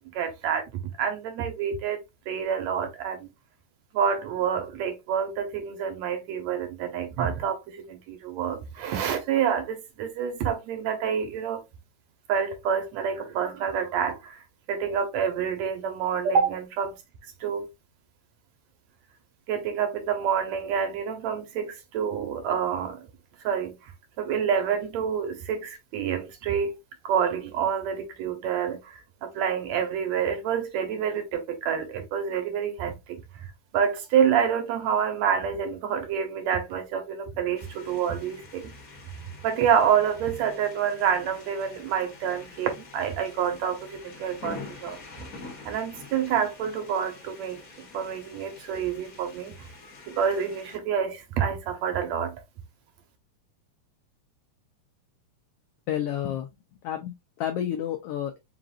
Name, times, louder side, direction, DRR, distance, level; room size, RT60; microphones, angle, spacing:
voice 1, 0.1-0.6 1.0-2.0 2.3-3.3 3.9-11.6 12.3-14.4 14.7-17.0 17.4-17.7 19.5-23.0 23.4-23.8 24.2-26.8 27.0-33.2 33.7-38.7 39.4-45.0 45.7-47.6 47.9-49.5 50.1-52.4, right 7 dB, 70° right, 2.1 m, -27 dB
sound 1, 37.6-50.8, left 4 dB, 50° left, 1.0 m, -46 dB
voice 2, 55.9-56.5 56.8-58.4, left 10 dB, 80° left, 1.3 m, -30 dB
5.0 x 3.9 x 2.5 m
omnidirectional pair, 3.4 m